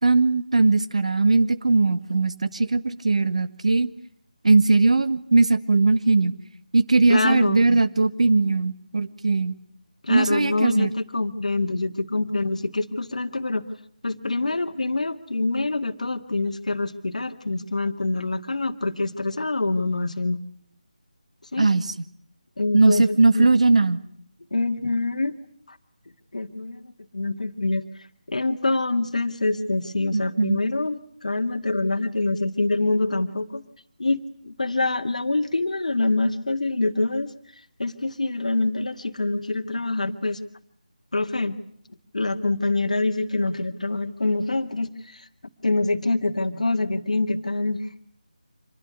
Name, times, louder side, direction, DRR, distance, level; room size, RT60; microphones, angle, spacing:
voice 1, 0.0-3.9 4.4-6.3 6.7-9.5 10.1-10.9 21.6-21.9 22.7-24.0 30.1-30.6, right 3 dB, 55° right, 13 dB, 1.6 m, -19 dB
voice 2, 7.1-7.8 10.0-13.6 14.0-20.4 21.5-21.7 22.6-23.5 24.5-25.4 25.7-25.8 26.3-27.8 28.3-33.6 34.0-37.3 37.8-40.4 41.1-41.6 42.1-45.3 45.6-47.8, left 2 dB, 60° left, 6 dB, 2.0 m, -25 dB
26.5 x 21.5 x 9.6 m, 0.64 s
figure-of-eight pair, 160°, 4 cm